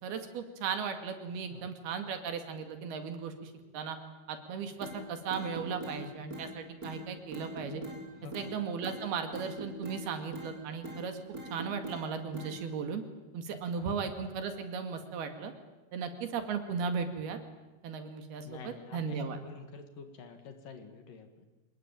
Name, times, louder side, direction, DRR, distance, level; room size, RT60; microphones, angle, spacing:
voice 1, 0.0-4.0 4.3-7.8 8.3-11.2 11.5-13.0 13.3-15.5 15.9-17.4 17.8-19.4, right 6 dB, 75° right, 7 dB, 4.0 m, -36 dB
sound 1, 4.8-5.0 5.3-6.0 6.3-6.5 6.8-7.0 7.3-8.0 8.3-8.5 8.8-9.0 9.3-10.0 10.3-10.5 10.8-11.0 11.3-12.0 12.3-12.5, right 2 dB, 20° right, 5.7 m, -42 dB
voice 2, 8.1-8.5 13.8-14.0 18.5-21.5, left 5 dB, 60° left, 7 dB, 3.5 m, -47 dB
25.5 x 21.0 x 8.9 m, 1.1 s
omnidirectional pair, 4.7 m